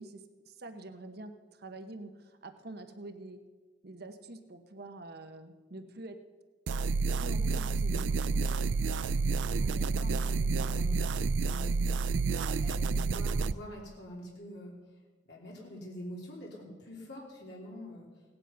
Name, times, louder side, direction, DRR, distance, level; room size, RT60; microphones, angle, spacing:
voice 1, 0.0-3.4 3.8-6.2 7.0-8.6, right 2 dB, 55° right, 7 dB, 0.9 m, -46 dB
sound 1, 6.7-13.5, right 4 dB, 80° right, 0.4 m, -29 dB
voice 2, 9.5-11.0 11.4-14.8 15.3-18.1, equal, 60° left, -3 dB, 3.1 m, -45 dB
17.0 x 9.9 x 5.6 m, 1.3 s
head